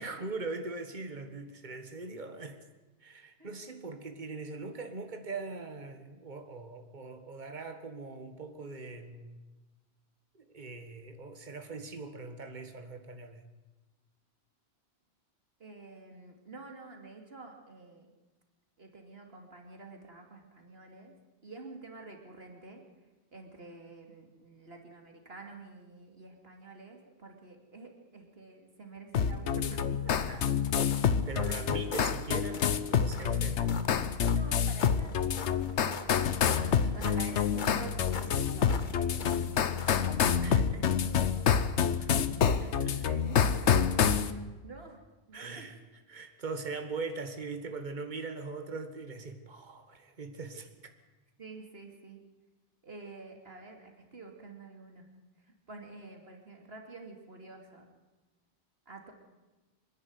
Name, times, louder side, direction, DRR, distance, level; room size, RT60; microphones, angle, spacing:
voice 1, 0.0-2.6 3.0-9.4 10.4-13.4 30.3-30.6 31.3-33.9 36.5-36.9 40.4-40.8 42.4-42.9 45.3-45.7 46.1-50.7, right 3 dB, 45° right, 7 dB, 1.8 m, -41 dB
voice 2, 15.6-18.1 18.8-21.1 21.4-22.8 23.3-30.4 31.4-31.8 34.3-36.2 36.9-41.2 42.5-43.9 44.3-45.7 51.4-52.2 52.8-55.1 55.7-57.9 58.9-59.1, right 3 dB, 60° right, 2 dB, 3.0 m, -49 dB
sound 1, 29.1-44.3, left 7 dB, 85° left, 1.2 m, -28 dB
sound 2, 30.6-40.0, left 5 dB, 45° left, 1.0 m, -44 dB
25.5 x 11.0 x 9.6 m, 1.1 s
omnidirectional pair, 1.1 m